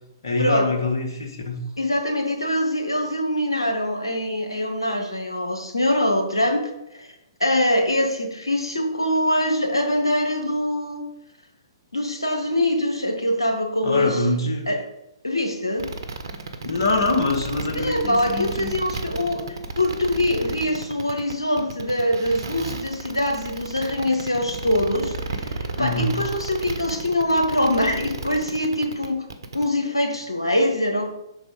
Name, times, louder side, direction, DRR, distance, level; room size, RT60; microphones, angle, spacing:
voice 1, 0.2-1.6 13.8-14.7 16.6-18.7 25.7-26.2, left 2 dB, 65° left, 3 dB, 0.9 m, -24 dB
voice 2, 1.8-6.6 7.0-7.1 7.4-11.0 11.9-14.2 14.7-14.8 15.2-15.9 17.7-19.4 19.8-29.2 29.5-31.1, left 1 dB, 90° left, 3 dB, 1.1 m, -23 dB
sound 1, 15.8-29.6, right 3 dB, 65° right, 0.7 m, -33 dB
6.1 x 4.0 x 4.7 m, 0.86 s
figure-of-eight pair, 120°, 2 cm